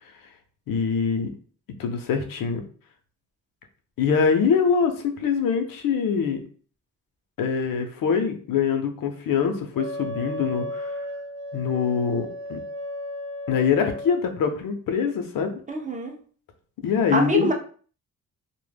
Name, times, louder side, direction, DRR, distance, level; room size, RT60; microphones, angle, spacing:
voice 1, 0.7-1.3 1.8-2.6 4.0-6.4 7.4-10.9 11.5-12.6 13.5-15.5 16.8-17.5, left 6 dB, 75° left, 6 dB, 0.5 m, -24 dB
Wind instrument woodwind instrument, 9.7-14.2, left 1 dB, 55° right, 0.8 m, -34 dB
voice 2, 15.7-16.2 17.1-17.5, right 1 dB, 25° right, 1 dB, 0.3 m, -24 dB
2.1 x 2.0 x 3.2 m, 0.43 s
wide cardioid pair, 130°, 34 cm